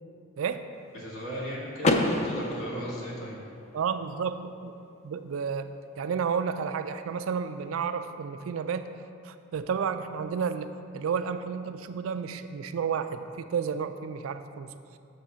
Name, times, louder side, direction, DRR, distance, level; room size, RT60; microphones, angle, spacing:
voice 1, 0.9-3.4, equal, 75° left, -5 dB, 1.6 m, -36 dB
Car / Door, 1.8-3.8, left 2 dB, 30° left, 0.4 m, -28 dB
voice 2, 3.7-4.8 5.0-8.9 9.2-14.7, right 6 dB, 75° right, 10 dB, 0.4 m, -31 dB
6.7 x 3.5 x 6.2 m, 2.5 s
head